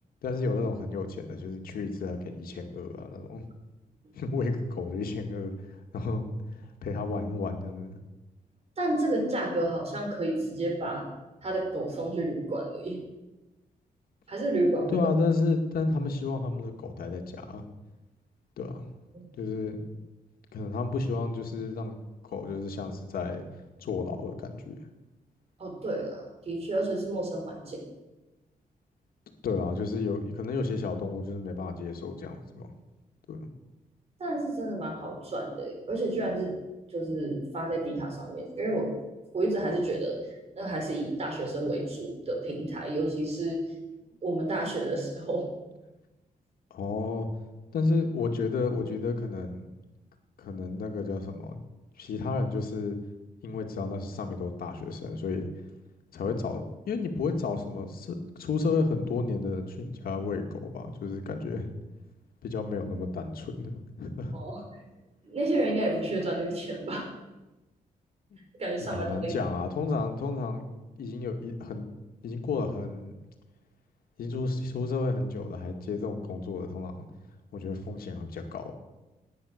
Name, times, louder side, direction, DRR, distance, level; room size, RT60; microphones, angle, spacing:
voice 1, 0.2-3.4 4.1-5.5 5.9-6.2 6.8-8.0 14.9-17.6 18.6-18.8 19.4-19.8 20.5-22.0 22.2-23.4 23.8-24.8 29.4-32.7 33.3-33.5 46.7-47.3 47.7-49.7 50.4-51.6 52.0-53.0 53.4-55.5 56.1-61.7 62.4-64.3 68.3-68.4 68.8-70.7 71.0-71.9 72.2-73.1 74.2-77.1 77.5-78.7, left 3 dB, 80° left, 4 dB, 2.0 m, -31 dB
voice 2, 8.8-11.0 11.4-13.0 14.3-15.0 19.1-19.2 25.6-27.9 34.2-36.5 36.9-38.9 39.3-40.2 40.5-43.6 44.2-45.5 64.3-64.6 65.2-67.0 68.6-69.3, right 1 dB, 45° right, 1 dB, 4.8 m, -30 dB
18.0 x 9.7 x 6.6 m, 1.1 s
wide cardioid pair, 140°, 15 cm